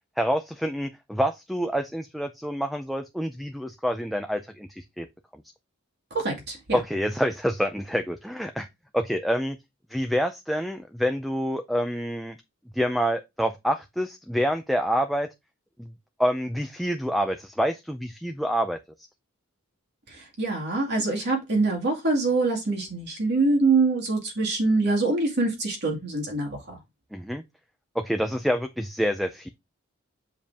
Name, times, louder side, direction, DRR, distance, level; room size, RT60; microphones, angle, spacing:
voice 1, 0.2-5.1 5.3-5.4 6.7-8.7 8.9-9.6 9.9-12.4 12.7-15.3 15.8-15.9 16.2-18.8 27.1-27.4 27.9-29.5, equal, ahead, 0.4 m, -27 dB
voice 2, 6.1-6.8 20.1-26.6, right 3 dB, 55° right, 2.2 m, -24 dB
6.8 x 5.1 x 3.5 m
head